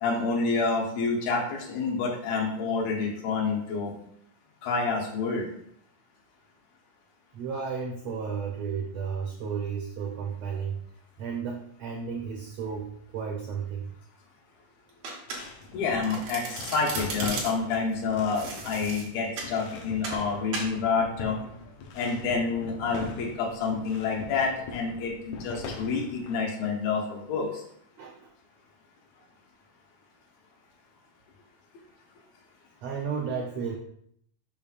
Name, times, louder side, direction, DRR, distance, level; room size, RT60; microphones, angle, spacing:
voice 1, 0.0-3.9 4.6-5.5 15.7-21.4 21.9-27.6, left 4 dB, 90° left, -2 dB, 3.0 m, -28 dB
voice 2, 7.3-10.8 11.2-13.9 28.0-28.3 32.8-33.8, right 6 dB, 90° right, 0 dB, 1.4 m, -33 dB
Domestic sounds home sounds, 15.0-15.7 16.0-17.8 18.4-19.6 20.0-20.2 20.5-20.8, right 3 dB, 70° right, 2.7 m, -36 dB
sound 1, 15.3-26.5, left 4 dB, 70° left, 1.9 m, -41 dB
6.8 x 5.6 x 2.5 m, 0.69 s
omnidirectional pair, 4.0 m